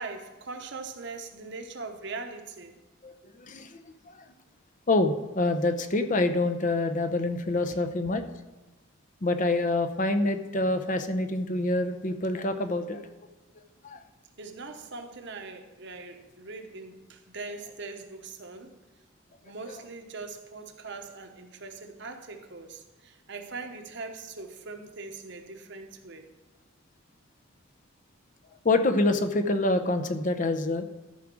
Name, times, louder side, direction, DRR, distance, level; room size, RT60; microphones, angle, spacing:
voice 1, 0.0-2.7 14.4-18.7 19.4-26.3, right 3 dB, 55° right, 5 dB, 1.1 m, -41 dB
voice 2, 3.0-3.8 4.1-4.2 4.9-8.2 9.2-13.1 13.8-14.0 28.6-30.8, left 2 dB, 40° left, 9 dB, 0.7 m, -26 dB
13.5 x 4.9 x 6.1 m, 1.1 s
head